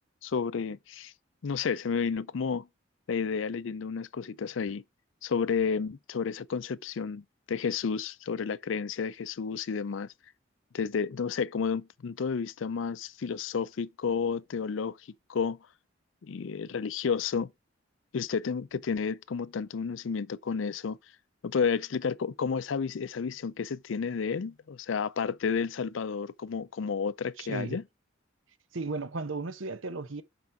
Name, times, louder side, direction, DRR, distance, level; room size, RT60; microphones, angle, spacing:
voice 1, 0.2-1.1 1.4-2.7 3.1-4.8 5.2-10.1 10.7-15.0 15.3-15.6 16.2-17.5 18.1-21.0 21.4-27.8, left 6 dB, 75° left, 0.4 m, -31 dB
voice 2, 27.4-27.8 28.7-30.2, right 3 dB, 80° right, 0.9 m, -35 dB
5.9 x 5.0 x 5.8 m
head